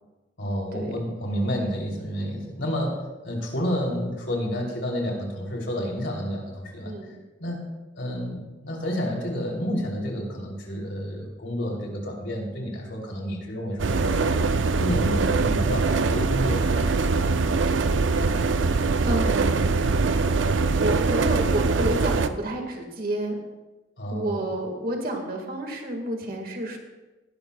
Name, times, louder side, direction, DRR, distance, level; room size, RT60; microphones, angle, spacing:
voice 1, 0.4-7.1 7.4-7.6 7.9-14.4 14.8-17.1 24.0-24.4, equal, 70° left, -1 dB, 3.1 m, -30 dB
sound 1, 13.8-22.3, right 4 dB, 70° right, 0.5 m, -23 dB
voice 2, 19.0-19.8 20.4-23.4 24.1-26.8, right 1 dB, 50° right, 3 dB, 1.8 m, -30 dB
19.0 x 12.0 x 2.3 m, 1.1 s
head